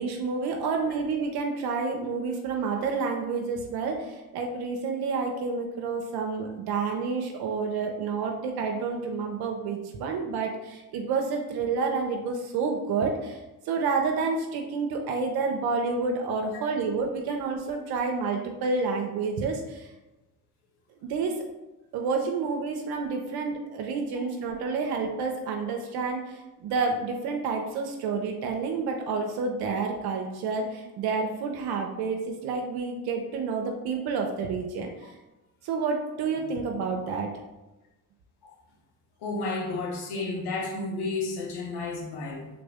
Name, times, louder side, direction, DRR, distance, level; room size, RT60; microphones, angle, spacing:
voice 1, 0.0-19.9 21.0-21.4 21.9-35.1 35.6-37.3, right 4 dB, 70° right, 2 dB, 0.6 m, -29 dB
voice 2, 39.2-42.5, left 3 dB, 75° left, 1 dB, 0.9 m, -32 dB
3.5 x 2.5 x 3.4 m, 1.0 s
supercardioid pair, 65°, 39 cm